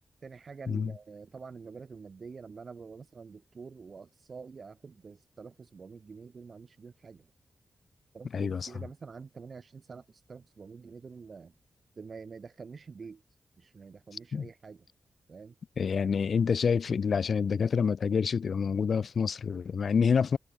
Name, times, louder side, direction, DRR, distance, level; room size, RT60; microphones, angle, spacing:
voice 1, 0.2-7.3 8.1-11.5 12.0-13.2 13.6-14.8 15.3-15.5, right 5 dB, 50° right, 4.4 m, -47 dB
voice 2, 8.3-8.7 14.3-14.5 15.8-20.4, left 6 dB, 60° left, 1.1 m, -27 dB
wide cardioid pair, 135°, 0 cm